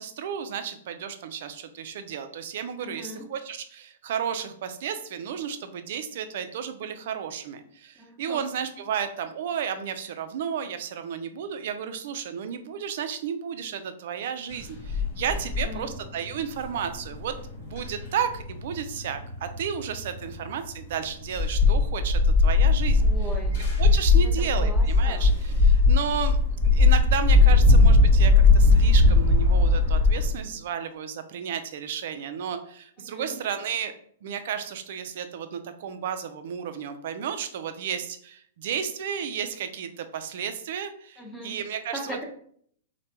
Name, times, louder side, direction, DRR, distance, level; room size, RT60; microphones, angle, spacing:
voice 1, 0.0-23.1 23.8-26.4 26.6-33.9 34.2-42.2, right 8 dB, 60° right, 9 dB, 0.3 m, -33 dB
voice 2, 2.8-3.3 8.0-8.4 15.5-15.9 23.0-23.5 24.2-24.3 24.6-25.3 33.0-33.4 41.2-41.5 41.9-42.2, equal, 5° left, -2 dB, 0.8 m, -39 dB
sound 1, 14.5-20.5 20.8-30.3, left 3 dB, 55° left, 1.1 m, -20 dB
3.2 x 2.1 x 2.9 m, 0.62 s
hypercardioid pair, 120°, 0 cm